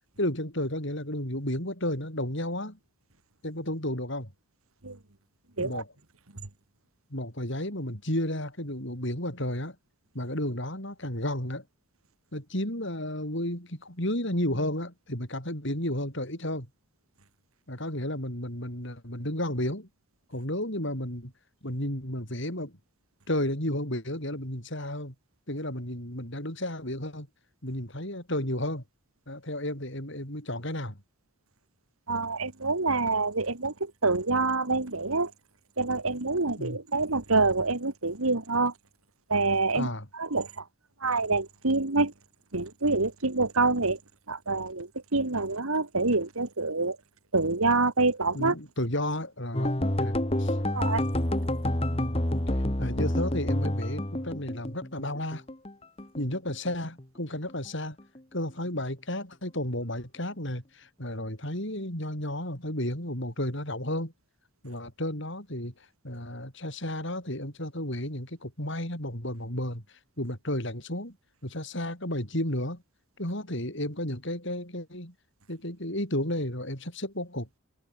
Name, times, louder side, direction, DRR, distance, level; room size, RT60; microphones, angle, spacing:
voice 1, 0.2-2.8 3.4-4.3 5.6-5.9 7.1-9.8 10.1-11.6 12.3-16.7 17.7-19.9 20.3-21.3 21.6-22.8 23.3-25.1 25.5-27.3 27.6-28.8 29.3-31.0 36.6-36.8 39.7-40.1 48.3-50.6 51.9-52.2 52.8-55.4 56.2-58.0 58.3-64.1 64.6-65.7 66.0-69.8 70.2-71.2 71.4-72.8 73.2-75.1 75.5-77.5, left 1 dB, 55° left, 8.0 m, -32 dB
voice 2, 32.1-35.3 35.8-38.7 39.3-39.9 40.1-40.6 41.0-42.1 42.5-44.0 44.3-47.0 47.3-48.6 50.7-51.0, right 3 dB, 80° right, 2.4 m, -26 dB
sound 1, 49.5-55.7 56.0-57.0 57.3-57.7 58.0-58.2, left 1 dB, 25° left, 2.3 m, -28 dB
head